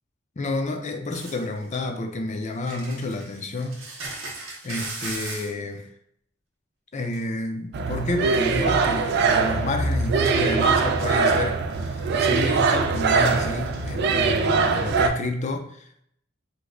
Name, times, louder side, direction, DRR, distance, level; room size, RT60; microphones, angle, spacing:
voice 1, 0.4-4.2 4.6-5.9 6.9-11.6 11.9-16.0, left 2 dB, 35° left, 0.4 m, -30 dB
sound 1, 1.1-1.8 2.5-5.5 7.1-7.2 8.8-8.9 9.1-9.6 10.0-10.1 10.5-10.7 11.0-11.4 11.7-12.5 13.2-13.9, right 3 dB, 90° right, 0.8 m, -38 dB
sound 2, 7.7-15.1, right 4 dB, 55° right, 0.3 m, -22 dB
3.1 x 2.1 x 3.7 m
head